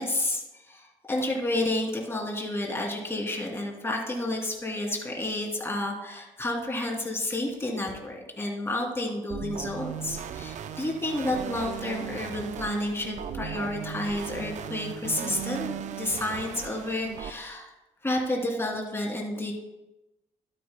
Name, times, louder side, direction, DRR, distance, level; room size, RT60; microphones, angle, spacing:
voice 1, 0.0-17.7 18.0-19.5, left 1 dB, 20° left, -1 dB, 2.9 m, -30 dB
sound 1, 9.3-17.3, right 9 dB, 65° right, 0.6 m, -37 dB
12.0 x 9.7 x 2.2 m, 0.96 s
supercardioid pair, 65°, 13 cm